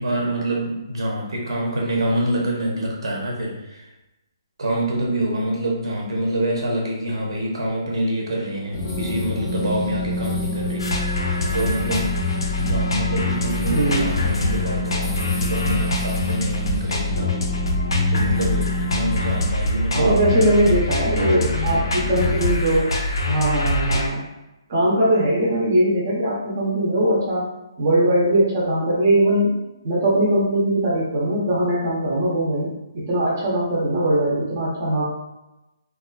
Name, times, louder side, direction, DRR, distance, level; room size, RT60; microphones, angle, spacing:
voice 1, 0.0-3.9 4.6-10.9 11.5-12.1 12.5-17.3 18.1-21.9, right 1 dB, 85° right, -2 dB, 0.8 m, -26 dB
sound 1, 8.7-19.5, left 1 dB, 30° left, 0.5 m, -28 dB
sound 2, 10.8-24.1, left 2 dB, 90° left, 0.5 m, -24 dB
voice 2, 13.7-14.2 19.9-22.9 23.2-24.2 24.7-27.4 27.8-29.5 29.8-35.0, right 1 dB, 30° right, -5 dB, 0.5 m, -20 dB
2.4 x 2.3 x 2.2 m, 0.96 s
hypercardioid pair, 175°, 3 cm